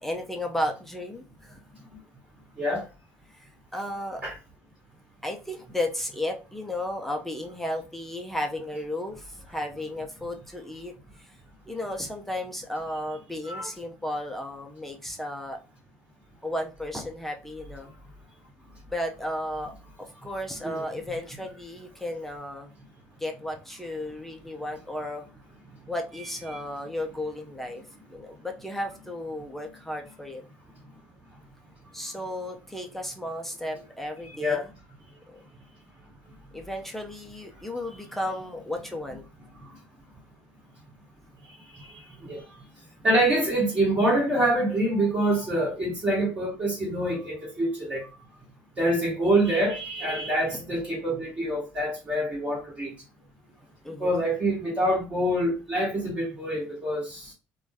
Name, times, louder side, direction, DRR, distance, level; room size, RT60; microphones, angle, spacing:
voice 1, 0.0-1.6 3.3-4.2 5.2-10.9 11.2-11.3 11.7-15.6 16.4-17.9 18.9-19.7 20.2-22.7 23.2-25.3 25.9-27.8 28.1-30.4 31.9-34.6 35.3-35.4 36.5-39.2 50.5-50.6 53.8-54.2, left 1 dB, 5° left, 0.4 m, -34 dB
voice 2, 34.2-34.6 41.7-42.4 43.0-48.1 48.8-52.9 54.0-57.3, right 1 dB, 25° right, 1.3 m, -26 dB
2.5 x 2.2 x 3.3 m
cardioid pair, 125°, 5 cm